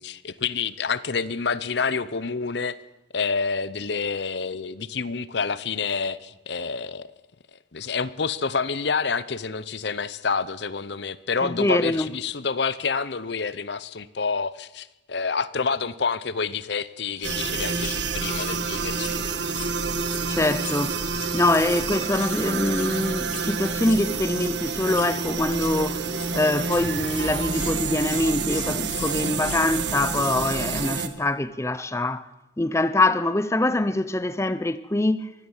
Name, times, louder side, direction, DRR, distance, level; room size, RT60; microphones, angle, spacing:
voice 1, 0.0-2.8 3.1-7.1 7.7-19.2, left 5 dB, 60° left, 0.8 m, -28 dB
voice 2, 11.4-12.1 20.3-26.1 26.3-32.3 32.6-35.3, left 2 dB, 15° left, 0.6 m, -24 dB
sound 1, 16.9-17.0 17.2-17.4 17.7-18.5 18.9-19.1 19.4-20.2 20.5-21.8 22.1-22.4 22.7-22.9 23.2-23.5 23.7-24.0 24.3-24.5 24.8-25.1 25.5-25.7 26.0-26.3 26.6-26.8 27.1-27.3 27.6-27.7 28.0-28.2 28.5-28.7 28.9-29.1 29.4-29.6, left 7 dB, 40° left, 3.5 m, -39 dB
sound 2, 17.2-31.1, right 4 dB, 65° right, 1.7 m, -28 dB
23.5 x 16.0 x 7.3 m
head